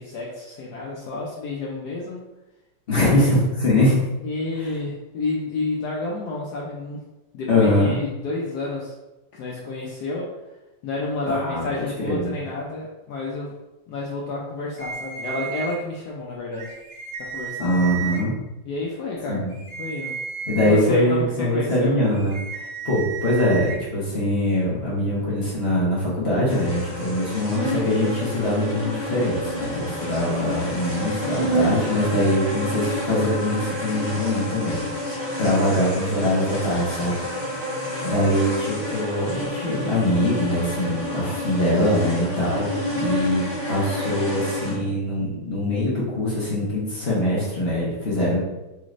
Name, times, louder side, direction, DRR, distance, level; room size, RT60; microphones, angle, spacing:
voice 1, 0.0-2.2 2.9-3.4 4.2-7.0 7.3-8.9 9.3-10.3 10.8-13.5 13.9-16.7 17.2-17.7 18.7-19.4 19.8-20.1 20.6-22.0 37.9-38.1, left 2 dB, 85° left, -3 dB, 0.8 m, -30 dB
voice 2, 2.9-4.0 7.5-8.0 11.3-12.3 17.6-18.3 19.3-19.5 20.5-22.3 22.8-34.8 35.4-37.1 37.5-48.4, left 1 dB, 45° left, -7 dB, 0.8 m, -23 dB
sound 1, 14.8-15.7 16.5-18.2 19.5-20.8 22.1-23.7, right 6 dB, 65° right, 1.5 m, -33 dB
sound 2, 26.5-44.8, equal, 25° right, 1.0 m, -29 dB
4.0 x 3.2 x 2.5 m, 1.0 s
omnidirectional pair, 2.4 m